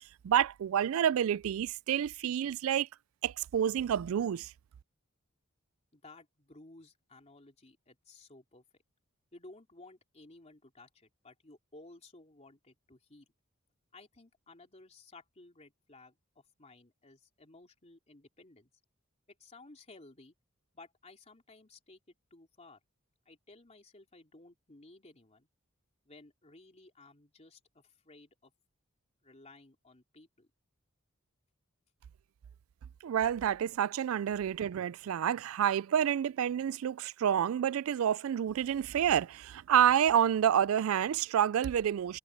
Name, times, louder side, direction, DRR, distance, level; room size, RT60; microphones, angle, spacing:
voice 1, 0.2-2.9 3.2-4.5 33.0-42.2, right 9 dB, 75° right, 0.3 m, -28 dB
voice 2, 5.9-8.6 9.3-13.3 13.9-18.7 19.4-20.3 20.7-22.8 23.2-25.5 26.0-28.5 29.2-30.5 34.2-34.3, left 2 dB, 30° left, 3.1 m, -56 dB
head